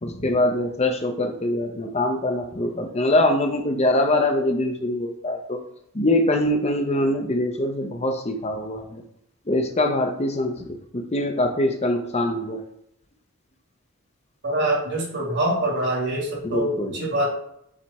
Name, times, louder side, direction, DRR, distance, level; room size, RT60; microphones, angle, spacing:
voice 1, 0.0-5.6 5.9-9.0 9.5-12.6 16.4-17.0, left 1 dB, 30° left, 5 dB, 0.7 m, -23 dB
voice 2, 14.4-17.3, right 1 dB, 50° right, -2 dB, 2.1 m, -24 dB
7.4 x 3.3 x 4.2 m, 0.74 s
head